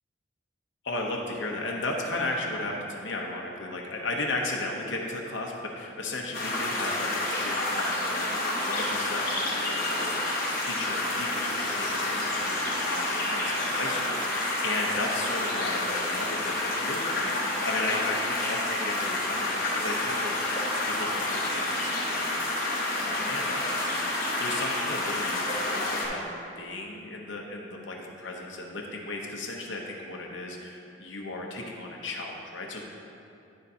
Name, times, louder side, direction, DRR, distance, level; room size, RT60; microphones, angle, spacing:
voice 1, 0.8-10.2 10.6-20.3 20.8-22.6 22.9-26.3 26.6-32.8, left 2 dB, 75° left, -1 dB, 0.8 m, -35 dB
sound 1, 6.3-26.1, left 2 dB, 50° left, 1.1 m, -29 dB
9.6 x 6.6 x 2.8 m, 2.6 s
head